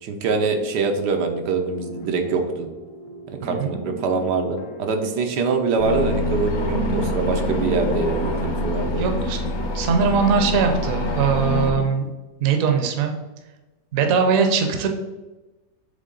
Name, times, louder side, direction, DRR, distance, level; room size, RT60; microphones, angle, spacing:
voice 1, 0.0-2.7 3.3-9.1, right 4 dB, 85° right, 4 dB, 1.4 m, -24 dB
sound 1, 1.6-11.9, right 1 dB, 80° left, 1.5 m, -40 dB
voice 2, 3.4-3.7 9.0-9.4 9.7-12.1 12.4-13.2 13.9-14.9, right 5 dB, 60° right, 4 dB, 1.1 m, -21 dB
sound 2, 5.8-11.7, left 1 dB, 50° left, 1.0 m, -25 dB
7.5 x 3.6 x 3.8 m, 1.1 s
omnidirectional pair, 1.8 m